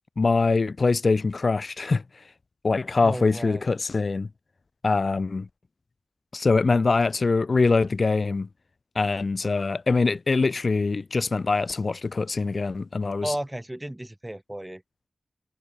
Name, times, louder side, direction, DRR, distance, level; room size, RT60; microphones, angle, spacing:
voice 1, 0.2-2.0 2.6-4.3 4.8-5.5 6.3-8.5 8.9-13.3, left 3 dB, 60° left, 1.0 m, -23 dB
voice 2, 3.0-3.6 13.2-14.8, right 1 dB, 15° right, 1.4 m, -33 dB
wide cardioid pair, 60°, 0 cm